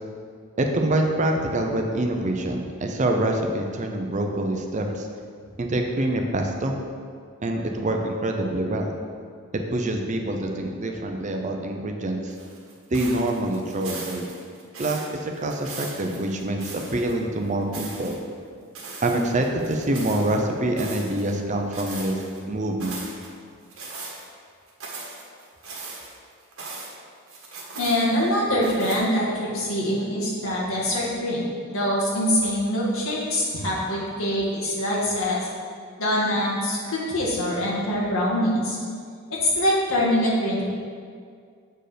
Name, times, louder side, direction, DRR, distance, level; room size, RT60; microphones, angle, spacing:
voice 1, 0.6-5.1 5.6-6.8 7.4-8.9 9.7-12.3 12.9-14.3 14.8-18.2 19.0-22.2 22.4-23.0, right 1 dB, 35° right, 3 dB, 0.6 m, -25 dB
sound 1, 12.3-17.2 17.5-18.2 18.7-20.4 20.8-21.4 21.7-22.4 22.8-23.3 23.7-24.3 24.7-27.0 27.3-28.3 28.6-29.0, right 3 dB, 70° right, 1.5 m, -39 dB
voice 2, 27.7-35.4 36.0-38.8 39.4-40.6, equal, 75° left, -5 dB, 1.9 m, -24 dB
7.6 x 4.5 x 5.0 m, 2.1 s
head